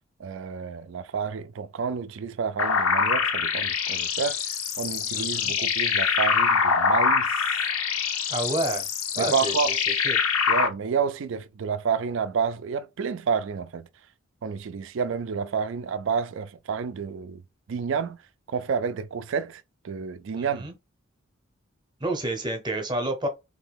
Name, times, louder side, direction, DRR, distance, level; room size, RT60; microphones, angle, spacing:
voice 1, 0.2-7.5 9.2-9.7 10.5-13.9 14.4-17.4 17.7-18.2 18.5-20.7, right 6 dB, 60° right, 0.3 m, -29 dB
sound 1, 2.6-10.7, left 6 dB, 85° left, 0.6 m, -24 dB
voice 2, 5.1-5.5 8.3-8.9 9.1-9.7 10.0-10.2 20.4-20.7 22.0-23.3, right 1 dB, 20° right, 0.8 m, -29 dB
3.1 x 2.7 x 3.3 m
head